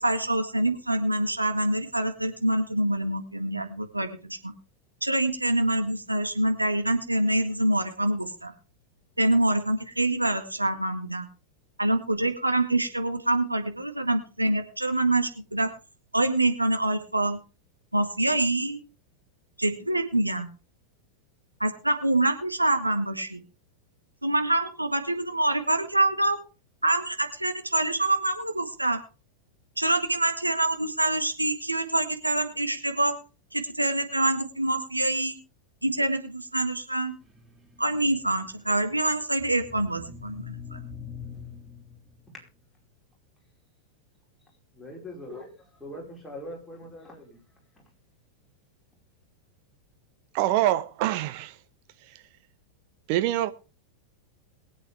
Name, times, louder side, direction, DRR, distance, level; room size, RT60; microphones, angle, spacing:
voice 1, 0.0-4.5 5.0-8.5 9.2-11.3 11.8-15.7 16.1-17.4 17.9-18.8 19.6-20.5 21.6-23.4 24.2-26.4 26.8-29.0 29.8-33.1 33.5-35.4 35.8-37.1 37.8-40.8, right 1 dB, 85° right, 1.8 m, -26 dB
sound 1, 37.2-42.4, left 6 dB, 10° right, 2.1 m, -44 dB
voice 2, 44.8-47.4, left 1 dB, 5° left, 5.0 m, -42 dB
voice 3, 50.3-51.6 53.1-53.5, right 14 dB, 45° right, 1.1 m, -25 dB
22.0 x 8.3 x 3.5 m
figure-of-eight pair, 90°, 0 cm